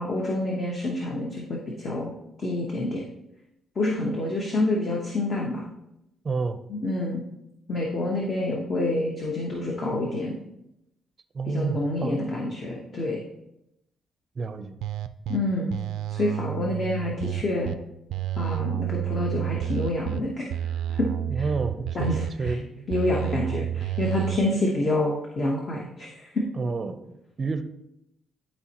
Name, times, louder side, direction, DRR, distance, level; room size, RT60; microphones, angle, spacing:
voice 1, 0.0-2.1 2.4-3.0 3.8-5.6 6.7-7.2 7.7-10.4 11.5-13.2 15.3-15.7 16.1-17.7 18.4-20.4 20.9-21.1 21.4-21.5 21.9-22.6 22.9-26.4, left 2 dB, 35° left, -2 dB, 1.0 m, -27 dB
voice 2, 6.2-6.6 11.3-12.2 14.4-14.8 21.3-22.1 22.4-22.8 26.6-27.6, right 4 dB, 35° right, 10 dB, 0.5 m, -30 dB
sound 1, 14.8-15.4 15.7-17.7 18.1-20.2 20.5-22.5 22.9-24.4, right 12 dB, 90° right, 0.3 m, -30 dB
11.5 x 4.4 x 2.9 m, 0.86 s
cardioid pair, 135°, 0 cm